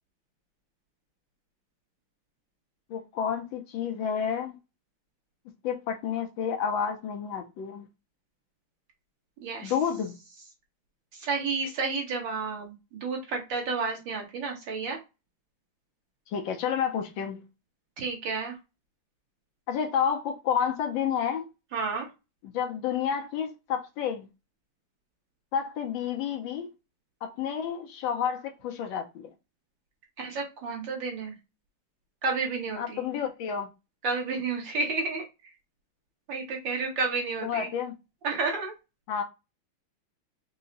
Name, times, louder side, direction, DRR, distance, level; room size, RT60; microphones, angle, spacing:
voice 1, 2.9-4.6 5.6-7.9 9.6-10.1 16.3-17.4 19.7-21.5 22.4-24.3 25.5-26.7 27.2-29.3 32.8-33.7 37.4-37.9 39.1-39.2, left 7 dB, 75° left, 1.3 m, -30 dB
voice 2, 9.4-9.7 11.1-15.0 18.0-18.6 21.7-22.1 30.2-31.4 32.2-33.0 34.0-35.5 36.3-37.7 38.2-38.7, right 4 dB, 60° right, 1.9 m, -31 dB
4.7 x 2.1 x 3.9 m
omnidirectional pair, 2.3 m